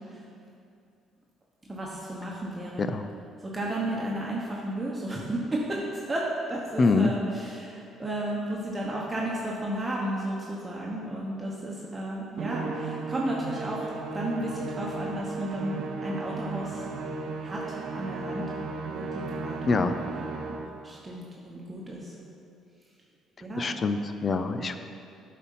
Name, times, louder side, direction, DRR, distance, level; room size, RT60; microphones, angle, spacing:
voice 1, 1.7-2.9 3.4-13.9 14.1-16.9 17.4-18.4 18.9-19.9 20.4-20.6 20.8-22.1 23.4-23.8, right 1 dB, 25° right, -3 dB, 1.1 m, -33 dB
voice 2, 6.8-7.1 19.7-20.0 23.6-24.8, left 3 dB, 40° left, 9 dB, 0.5 m, -25 dB
Musical instrument, 12.4-20.8, right 4 dB, 70° right, 0.7 m, -35 dB
8.0 x 4.3 x 5.6 m, 2.5 s
supercardioid pair, 70°, 0 cm